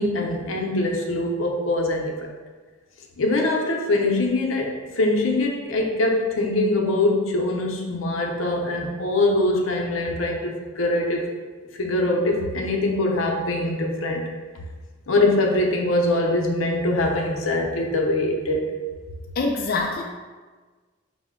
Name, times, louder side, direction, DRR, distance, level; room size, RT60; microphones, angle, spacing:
voice 1, 0.0-2.3 3.2-11.3 11.8-14.3 15.1-18.7, left 2 dB, 90° left, 1 dB, 0.6 m, -23 dB
voice 2, 19.4-20.0, left 3 dB, 50° left, 0 dB, 0.3 m, -24 dB
5.3 x 2.1 x 3.6 m, 1.4 s
head